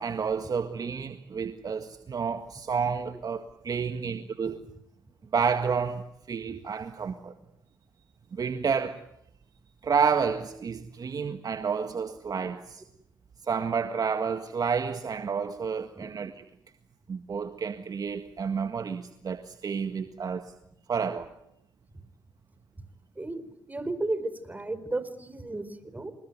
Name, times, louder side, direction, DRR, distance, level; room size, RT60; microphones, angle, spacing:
voice 1, 0.0-4.6 5.3-7.3 8.3-9.0 9.8-12.8 13.5-16.4 17.1-20.5 20.9-21.3, right 6 dB, 45° right, 1.8 m, -30 dB
voice 2, 23.2-26.1, right 2 dB, 20° right, 4.4 m, -34 dB
28.0 x 20.0 x 9.5 m
supercardioid pair, 55°, 9 cm